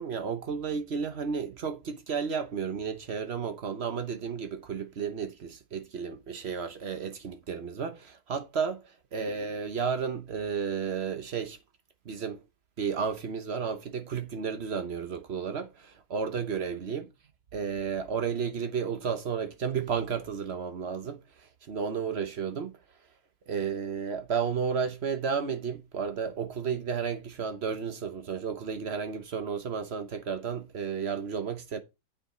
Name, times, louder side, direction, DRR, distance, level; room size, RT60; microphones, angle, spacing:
voice 1, 0.0-8.8 9.1-11.6 12.0-12.4 12.8-17.1 17.5-22.7 23.5-31.8, right 6 dB, 60° right, 0.6 m, -32 dB
8.9 x 5.0 x 5.0 m
omnidirectional pair, 2.4 m